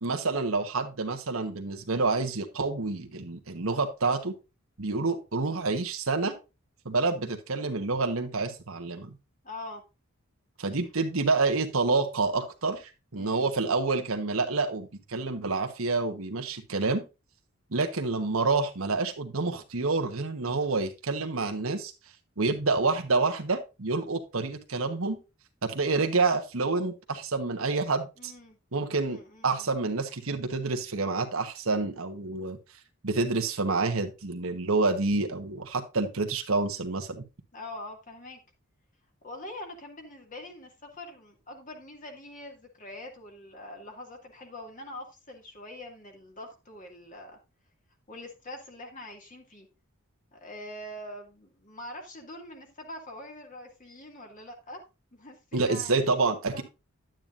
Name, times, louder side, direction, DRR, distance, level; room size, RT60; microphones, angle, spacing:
voice 1, 0.0-4.3 4.8-6.4 6.8-9.2 10.6-17.0 17.7-21.9 22.4-25.2 25.6-28.3 28.7-29.2 29.4-32.6 33.0-37.2 55.5-56.6, right 3 dB, 85° right, 5 dB, 1.2 m, -28 dB
voice 2, 9.4-9.8 13.1-13.5 28.2-28.6 29.0-29.7 37.5-38.4 39.2-47.4 48.1-49.7 50.3-54.8 55.1-56.2 56.5-56.6, left 1 dB, 40° left, 2 dB, 2.2 m, -44 dB
10.5 x 9.0 x 2.6 m, 0.27 s
head